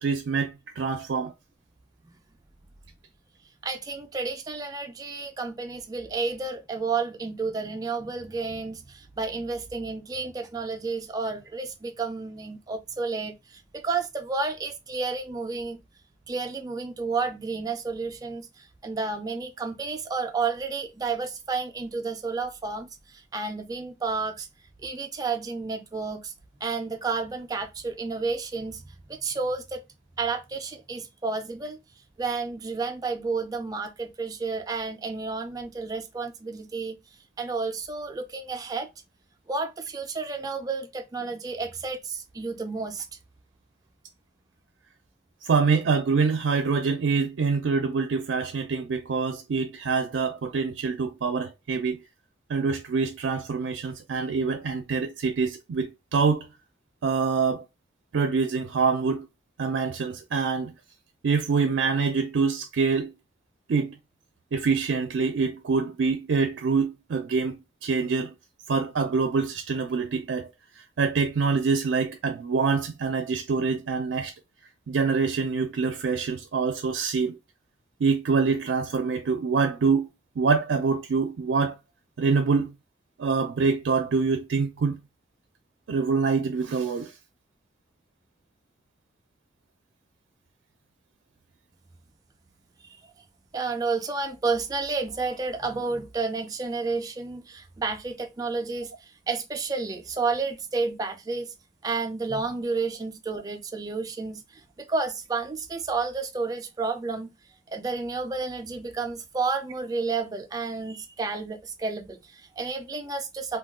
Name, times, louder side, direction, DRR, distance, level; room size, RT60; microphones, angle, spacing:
voice 1, 0.0-1.3 45.4-52.0 52.5-56.5 57.0-57.6 58.1-59.3 59.6-60.7 61.2-63.1 63.7-63.9 64.5-68.3 68.7-70.5 71.0-74.3 74.9-77.4 78.0-80.1 80.4-81.7 82.2-82.7 83.2-85.0 85.9-87.1, right 5 dB, 90° right, 0.4 m, -25 dB
voice 2, 3.6-15.8 16.3-24.5 24.8-26.3 26.6-29.8 30.2-31.8 32.2-37.0 37.4-38.9 39.5-43.1 92.8-93.0 93.5-101.5 101.8-107.3 107.7-113.6, right 4 dB, 20° right, 0.3 m, -31 dB
2.3 x 2.2 x 3.5 m
head